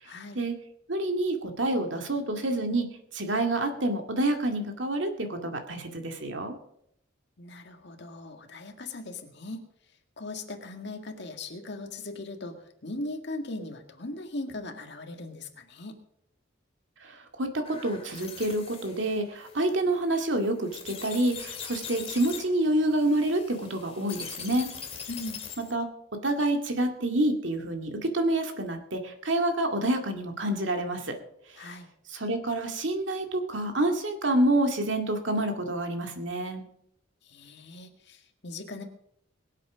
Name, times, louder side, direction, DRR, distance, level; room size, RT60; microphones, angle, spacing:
voice 1, 0.0-0.4 7.4-9.6 10.2-16.0 25.1-25.4 31.6-31.9 37.2-38.8, left 2 dB, 60° left, 4 dB, 2.0 m, -39 dB
voice 2, 0.9-2.9 3.1-6.5 17.0-24.7 25.7-25.9 26.2-31.2 32.1-36.6, right 1 dB, 65° right, 4 dB, 2.1 m, -28 dB
sound 1, 17.7-25.8, left 7 dB, 30° left, 2.1 m, -42 dB
22.0 x 8.2 x 5.1 m, 0.72 s
head